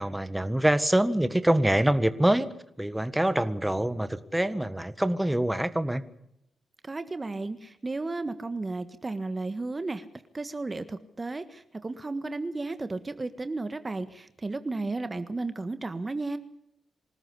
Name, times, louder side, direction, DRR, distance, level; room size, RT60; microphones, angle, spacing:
voice 1, 0.0-2.5 2.8-6.0, right 1 dB, 10° right, 12 dB, 1.7 m, -25 dB
voice 2, 6.8-10.0 10.3-16.4, right 3 dB, 30° right, 11 dB, 1.6 m, -33 dB
26.0 x 13.5 x 8.4 m, 0.78 s
hypercardioid pair, 45°, 0 cm